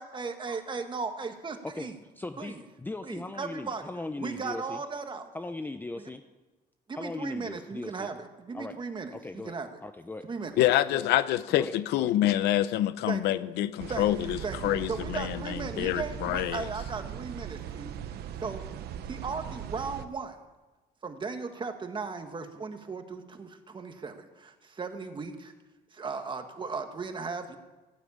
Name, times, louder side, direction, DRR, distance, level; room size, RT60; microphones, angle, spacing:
voice 1, 0.0-2.0 2.4-2.6 3.0-5.3 6.9-9.7 10.2-10.6 13.1-13.4 13.9-18.6 19.0-20.4 21.0-25.5 25.9-27.6, right 4 dB, 30° right, 7 dB, 1.7 m, -37 dB
voice 2, 2.2-4.8 5.3-6.2 7.0-8.1 8.5-8.7 9.1-9.6 9.8-10.2 10.6-11.1 11.5-12.1, left 2 dB, 10° left, 8 dB, 0.6 m, -39 dB
voice 3, 10.6-16.6, left 13 dB, 85° left, 15 dB, 0.7 m, -27 dB
sound 1, 13.8-20.0, right 9 dB, 70° right, 1.0 m, -39 dB
14.5 x 9.1 x 8.6 m, 1.2 s
cardioid pair, 110°, 17 cm